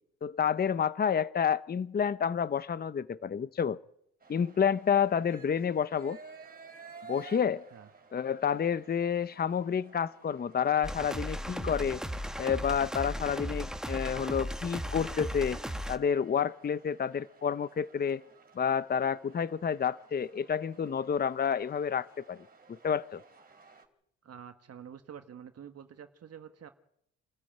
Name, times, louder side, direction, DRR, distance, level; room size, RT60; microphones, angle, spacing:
voice 1, 0.2-3.8 4.3-6.2 7.1-7.6 8.1-12.0 12.4-15.6 15.9-18.2 18.6-22.4 22.8-23.2, left 7 dB, 30° left, 0.8 m, -29 dB
sound 1, 4.2-23.9, right 4 dB, 30° right, 4.1 m, -55 dB
sound 2, 10.8-16.0, equal, ahead, 1.6 m, -36 dB
voice 2, 24.2-26.7, right 8 dB, 55° right, 1.6 m, -48 dB
27.5 x 13.5 x 9.0 m
cardioid pair, 90°, 30 cm